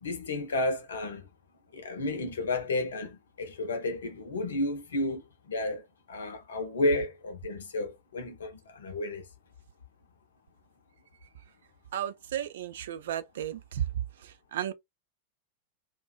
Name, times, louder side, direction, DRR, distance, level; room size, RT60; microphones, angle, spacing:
voice 1, 0.0-1.2 1.7-5.2 5.5-5.8 6.1-9.2, left 2 dB, 70° left, 0.7 m, -32 dB
voice 2, 11.9-13.8 14.5-14.7, right 10 dB, 60° right, 0.3 m, -33 dB
2.5 x 2.1 x 2.3 m
figure-of-eight pair, 90°, 0 cm